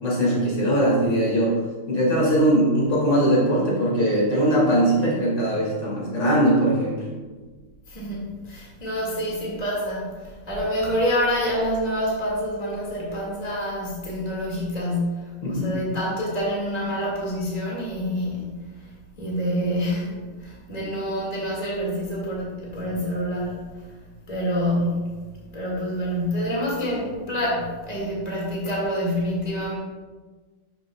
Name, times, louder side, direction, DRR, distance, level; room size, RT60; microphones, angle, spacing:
voice 1, 0.0-1.6 1.9-7.0 15.4-15.7, right 1 dB, 70° left, -5 dB, 3.0 m, -21 dB
voice 2, 7.9-18.9 19.2-23.8 24.3-25.2 25.5-29.8, equal, 20° left, -5 dB, 2.0 m, -27 dB
12.0 x 6.1 x 2.3 m, 1.4 s
omnidirectional pair, 2.0 m